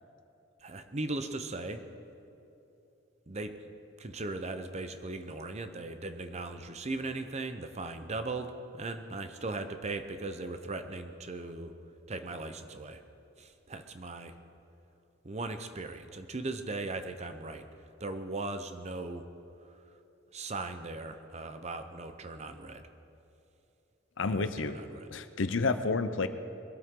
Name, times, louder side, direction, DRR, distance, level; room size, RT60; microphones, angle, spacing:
voice 1, 0.6-1.8 3.3-3.5 4.0-11.7 12.1-13.0 13.4-14.3 15.2-17.6 18.0-19.2 20.3-22.8 24.2-25.1, right 2 dB, 35° right, 8 dB, 0.8 m, -38 dB
voice 2, 24.2-24.8 25.1-26.3, left 3 dB, 80° left, 11 dB, 0.7 m, -30 dB
21.5 x 13.0 x 3.8 m, 2.9 s
head